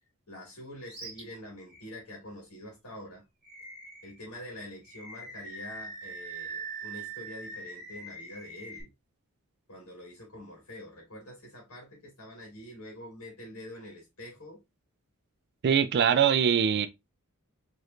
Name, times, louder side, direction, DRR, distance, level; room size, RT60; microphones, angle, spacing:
voice 1, 0.3-3.2 4.0-8.9 9.7-14.6, left 1 dB, 85° left, 2.0 m, -45 dB
Animal, 0.9-1.2 1.7-1.8 3.4-4.2 4.8-8.8, right 3 dB, 5° right, 1.7 m, -42 dB
voice 2, 15.6-16.9, right 7 dB, 50° right, 0.3 m, -22 dB
4.6 x 3.2 x 2.4 m
head